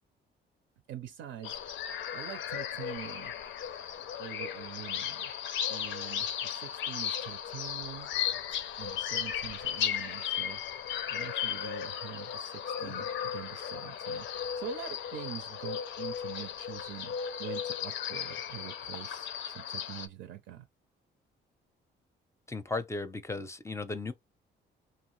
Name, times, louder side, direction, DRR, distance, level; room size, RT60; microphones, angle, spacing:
voice 1, 0.9-1.6 2.1-3.3 4.2-5.3 5.7-8.1 8.8-20.7, right 11 dB, 80° right, 0.5 m, -45 dB
sound 1, 1.4-20.1, left 9 dB, 75° left, 0.5 m, -36 dB
voice 2, 22.5-24.1, left 3 dB, 15° left, 0.5 m, -36 dB
2.7 x 2.4 x 3.1 m
cardioid pair, 90°, 20 cm